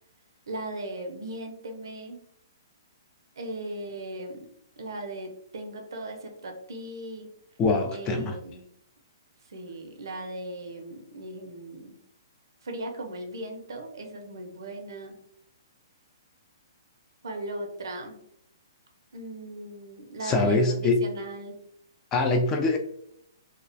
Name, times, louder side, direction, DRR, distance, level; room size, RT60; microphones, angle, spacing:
voice 1, 0.5-2.2 3.4-4.5 4.8-7.3 7.9-8.7 9.5-12.0 12.6-15.2 17.2-18.2 19.1-21.6, right 1 dB, 75° right, 4 dB, 0.5 m, -37 dB
voice 2, 7.6-8.4 20.2-21.0 22.1-22.8, left 3 dB, 20° left, 5 dB, 0.3 m, -23 dB
2.3 x 2.1 x 2.5 m, 0.73 s
hypercardioid pair, 135°, 2 cm